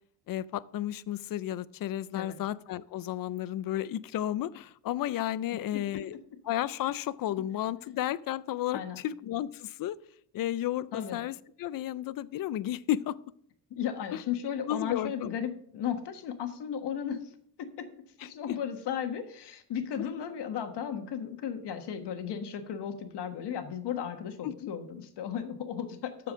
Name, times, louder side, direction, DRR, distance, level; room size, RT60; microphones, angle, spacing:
voice 1, 0.3-6.2 6.5-10.0 10.3-13.2 14.1-14.2 14.7-15.3 18.2-18.6 24.4-24.7, left 12 dB, 55° left, 19 dB, 0.5 m, -33 dB
voice 2, 13.7-17.2 17.6-17.9 18.2-26.3, left 8 dB, 75° left, 7 dB, 1.4 m, -35 dB
13.0 x 4.7 x 6.2 m, 0.65 s
wide cardioid pair, 175°, 41 cm